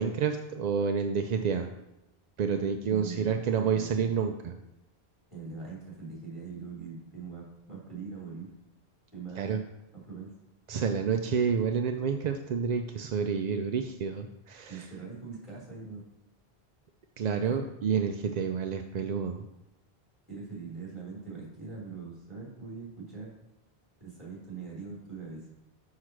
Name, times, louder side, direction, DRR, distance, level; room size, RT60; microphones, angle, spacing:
voice 1, 0.0-1.7 2.4-4.6 9.4-9.6 10.7-14.9 17.2-19.4, right 6 dB, 55° right, 5 dB, 0.5 m, -29 dB
voice 2, 2.9-4.0 5.3-8.5 9.1-9.7 10.1-10.3 14.7-16.0 17.4-17.6 20.3-23.3 24.0-25.5, right 5 dB, 30° right, -5 dB, 3.1 m, -42 dB
6.5 x 4.7 x 6.0 m, 0.91 s
omnidirectional pair, 1.1 m